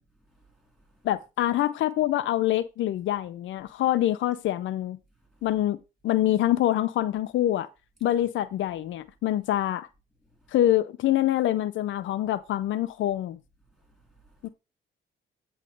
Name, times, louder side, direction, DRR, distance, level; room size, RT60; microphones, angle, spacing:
voice 1, 0.0-1.1 3.7-3.8 5.1-5.6 8.0-8.3 10.2-10.6 13.6-14.5, right 2 dB, ahead, 3.6 m, -63 dB
voice 2, 1.0-5.0 5.4-5.8 6.0-7.7 8.0-9.9 10.5-13.4 14.4-14.5, left 13 dB, 75° left, 0.5 m, -25 dB
8.4 x 3.2 x 6.4 m
cardioid pair, 90°, 20 cm